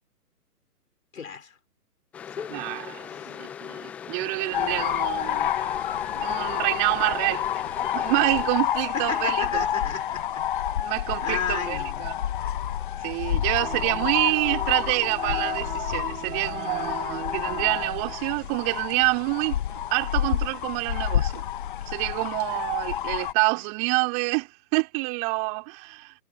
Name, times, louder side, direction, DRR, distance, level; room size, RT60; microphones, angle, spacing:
voice 1, 1.1-1.5 2.4-2.5 3.1-3.4 4.5-5.0 8.9-10.8 11.2-12.4, left 7 dB, 55° left, 4.5 m, -33 dB
sound 1, 2.1-8.5, left 8 dB, 5° left, 0.7 m, -40 dB
voice 2, 2.5-5.7 6.1-9.7 10.8-12.2 13.0-21.5 21.9-26.1, right 40 dB or more, 20° right, 4.4 m, -27 dB
sound 2, 4.5-23.3, left 11 dB, 35° left, 1.5 m, -29 dB
sound 3, 13.6-18.6, right 6 dB, 60° right, 5.6 m, -38 dB
figure-of-eight pair, 135°, 47 cm